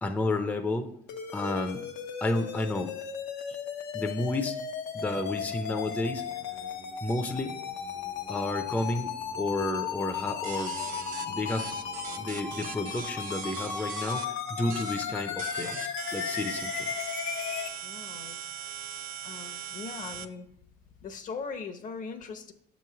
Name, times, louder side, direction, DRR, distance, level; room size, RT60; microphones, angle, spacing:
voice 1, 0.0-0.9 1.3-1.9 2.2-2.9 3.9-4.6 4.9-6.3 7.0-7.6 8.3-10.7 11.3-11.7 12.2-16.9, left 2 dB, 10° left, 5 dB, 0.5 m, -31 dB
sound 1, 1.1-17.7, left 7 dB, 85° left, 0.7 m, -35 dB
Musical instrument, 5.0-13.5, right 3 dB, 85° right, 1.2 m, -51 dB
sound 2, 10.4-14.3 14.7-15.1 15.4-20.3, right 9 dB, 55° right, 0.5 m, -40 dB
voice 2, 17.8-18.4 19.2-20.5 21.0-22.5, left 5 dB, 50° left, 7 dB, 0.7 m, -40 dB
6.9 x 3.1 x 5.7 m, 0.71 s
cardioid pair, 110°, 17 cm